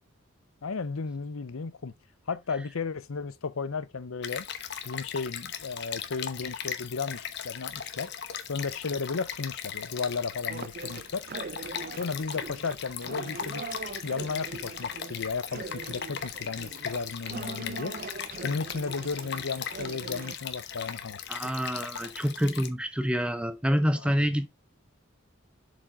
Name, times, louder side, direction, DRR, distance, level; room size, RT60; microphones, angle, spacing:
voice 1, 0.6-1.9 2.3-4.5 4.8-8.1 8.5-11.2 12.0-13.6 14.0-17.9 18.4-21.5 24.0-24.3, left 4 dB, 85° left, 0.7 m, -34 dB
Stream, 4.2-22.7, left 8 dB, 55° left, 0.9 m, -38 dB
sound 1, 10.5-20.4, right 4 dB, 45° right, 0.5 m, -41 dB
voice 2, 21.3-24.5, equal, 5° right, 0.7 m, -27 dB
7.3 x 5.0 x 3.7 m
head